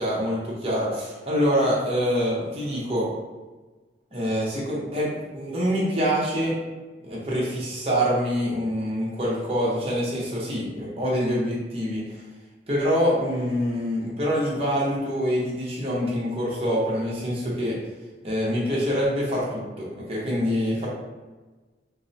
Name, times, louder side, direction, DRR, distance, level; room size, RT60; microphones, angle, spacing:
voice 1, 0.0-3.1 4.1-6.5 7.0-12.2 12.7-17.7 18.2-20.9, equal, 35° right, -6 dB, 0.9 m, -25 dB
4.3 x 2.1 x 2.7 m, 1.2 s
head